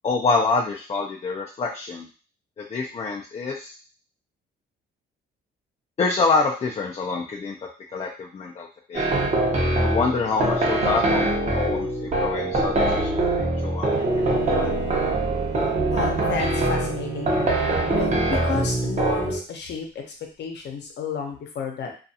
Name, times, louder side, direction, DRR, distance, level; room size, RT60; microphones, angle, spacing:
voice 1, 0.0-2.1 2.6-3.7 6.0-7.6 7.9-9.1 9.8-13.1 13.4-14.7, left 4 dB, 30° left, -1 dB, 0.4 m, -26 dB
sound 1, 8.9-19.4, right 2 dB, 35° right, 0.8 m, -23 dB
Bowed string instrument, 13.9-18.6, right 6 dB, 85° right, 0.7 m, -34 dB
voice 2, 15.9-19.9 20.4-21.9, left 5 dB, 60° left, 2 dB, 0.8 m, -32 dB
2.4 x 2.3 x 2.7 m, 0.36 s
cardioid pair, 90°, 20 cm